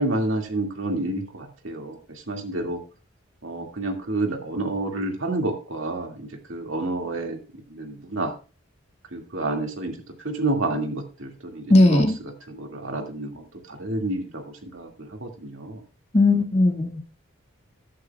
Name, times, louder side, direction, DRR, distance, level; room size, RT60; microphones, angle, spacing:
voice 1, 0.0-2.8 3.4-7.4 7.7-8.3 9.1-10.0 10.2-12.1 12.5-15.8, right 2 dB, 75° right, 3 dB, 2.3 m, -29 dB
voice 2, 11.7-12.1 16.1-17.0, left 2 dB, 30° left, 2 dB, 1.9 m, -17 dB
13.5 x 11.5 x 2.4 m, 0.34 s
head